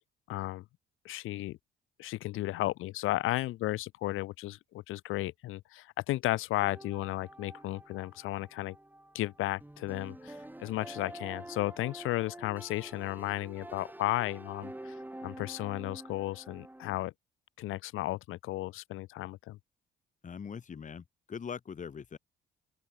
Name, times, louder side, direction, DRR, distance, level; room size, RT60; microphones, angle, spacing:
voice 1, 0.3-0.6 1.0-1.6 2.0-8.7 9.1-14.9 15.2-17.1 17.6-19.6, left 17 dB, 85° left, 1.2 m, -34 dB
sound 1, 6.6-17.0, right 1 dB, 10° right, 4.9 m, -48 dB
voice 2, 20.2-22.2, left 6 dB, 40° left, 1.1 m, -42 dB
open air
supercardioid pair, 70°, 21 cm